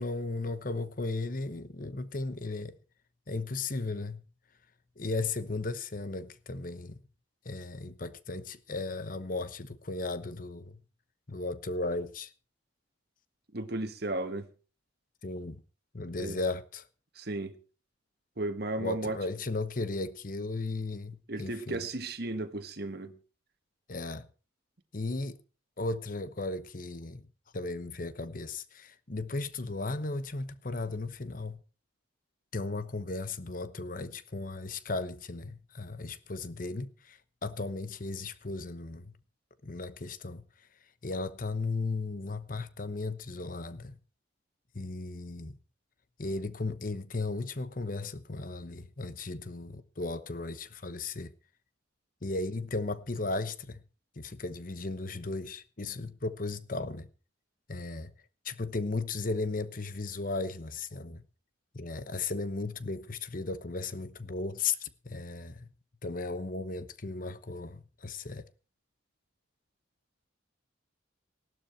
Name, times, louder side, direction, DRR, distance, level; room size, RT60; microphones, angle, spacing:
voice 1, 0.0-2.8 3.3-4.2 5.0-7.0 7.4-10.8 11.3-12.3 15.2-15.6 15.9-16.8 18.8-21.8 23.9-24.3 24.9-25.4 25.8-27.3 27.5-31.6 32.5-39.1 39.6-40.4 41.0-43.9 44.7-45.6 46.2-51.3 52.2-53.8 54.2-57.1 57.7-58.1 58.4-61.2 61.7-65.7 66.0-68.5, left 3 dB, 45° left, 1.0 m, -35 dB
voice 2, 13.5-14.5 16.2-16.4 17.2-17.6 18.4-19.2 21.3-23.1, right 2 dB, 55° right, 1.5 m, -34 dB
17.0 x 12.0 x 4.5 m
head